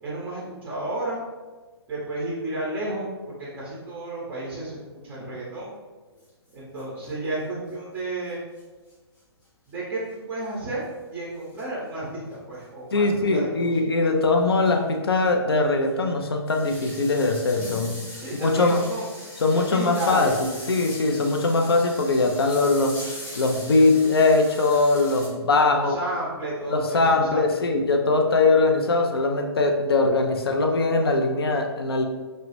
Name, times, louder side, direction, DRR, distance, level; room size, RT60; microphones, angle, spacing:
voice 1, 0.0-1.2 1.9-3.1 3.4-5.7 6.5-8.4 9.7-13.0 13.3-13.7 18.2-19.1 19.5-20.4 25.7-27.4, right 1 dB, 10° right, -6 dB, 0.6 m, -32 dB
sound 1, 6.2-6.3 6.5-6.6 6.8-6.9 8.6-8.7 8.9-9.0 10.0-10.1 11.6-11.8 12.9-13.0 13.6-13.7 14.1-14.2 14.6-14.9 15.1-15.2 15.8-25.3, left 1 dB, 45° left, 0.8 m, -40 dB
voice 2, 12.9-18.0 18.4-18.8 19.4-23.0 23.4-26.0 26.7-32.1, left 3 dB, 65° left, 4 dB, 0.4 m, -21 dB
2.3 x 2.0 x 2.9 m, 1.3 s
figure-of-eight pair, 125°, 14 cm